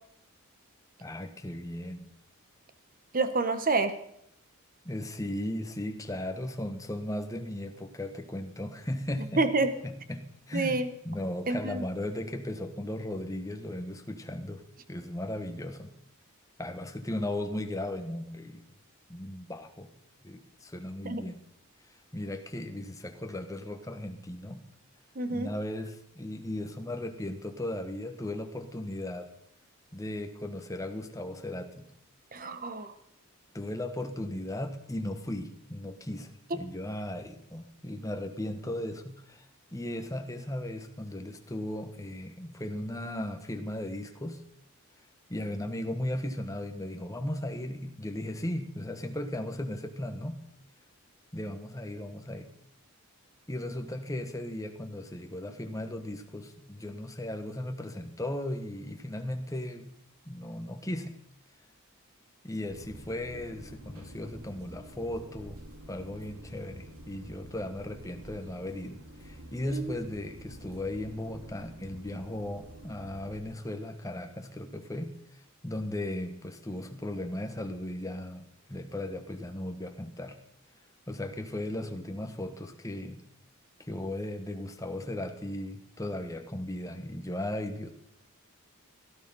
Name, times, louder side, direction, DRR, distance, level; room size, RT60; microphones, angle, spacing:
voice 1, 1.0-2.1 4.8-14.6 14.9-15.9 16.6-18.6 19.1-19.9 20.2-21.4 22.1-24.6 25.3-29.3 29.9-31.9 33.5-39.5 39.7-44.4 45.3-50.4 51.3-52.5 53.5-59.9 60.2-61.1 62.4-65.6 65.9-75.1 75.6-80.4 81.1-83.2 83.8-87.9, left 1 dB, 15° left, 6 dB, 1.3 m, -36 dB
voice 2, 3.1-3.9 9.4-9.7 10.5-10.9 11.5-11.8 21.0-21.2 25.2-25.5 32.3-32.9 69.7-70.0, right 3 dB, 40° right, 11 dB, 1.2 m, -28 dB
sound 1, 62.7-73.4, right 1 dB, 80° right, 2.4 m, -49 dB
17.0 x 12.0 x 5.5 m, 0.74 s
head